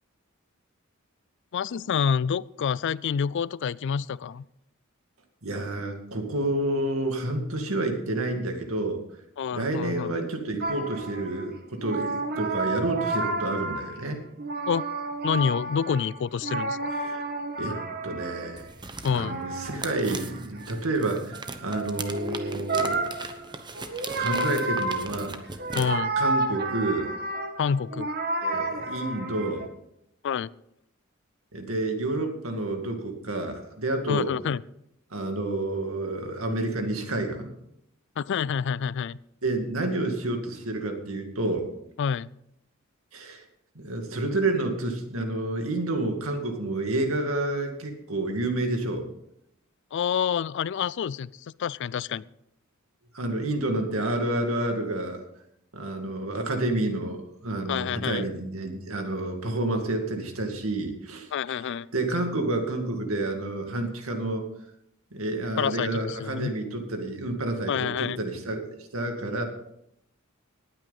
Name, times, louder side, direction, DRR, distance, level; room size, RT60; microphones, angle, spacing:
voice 1, 1.5-4.5 9.4-10.1 14.7-14.9 15.2-16.9 19.0-19.4 25.7-26.1 27.6-28.1 30.2-30.5 34.1-34.6 38.2-39.2 42.0-42.3 49.9-51.3 51.6-52.2 57.7-58.3 61.3-61.9 65.6-66.5 67.7-68.2, left 7 dB, 60° left, 21 dB, 0.4 m, -27 dB
voice 2, 5.4-9.0 9.5-14.2 17.0-17.2 17.6-18.7 19.1-23.1 24.2-25.4 26.2-27.1 28.4-29.7 31.5-34.3 35.1-37.5 39.4-41.7 43.1-43.4 43.8-49.1 53.1-55.2 55.7-61.6 61.9-64.5 65.1-68.6 68.9-69.4, right 2 dB, 90° right, 4 dB, 2.2 m, -29 dB
sound 1, 10.6-11.5 11.8-14.1 14.4-18.6 19.0-29.7, right 2 dB, 50° right, 1.5 m, -31 dB
sound 2, 18.5-25.9, right 3 dB, 20° right, 1.0 m, -39 dB
19.0 x 9.1 x 4.1 m, 0.78 s
head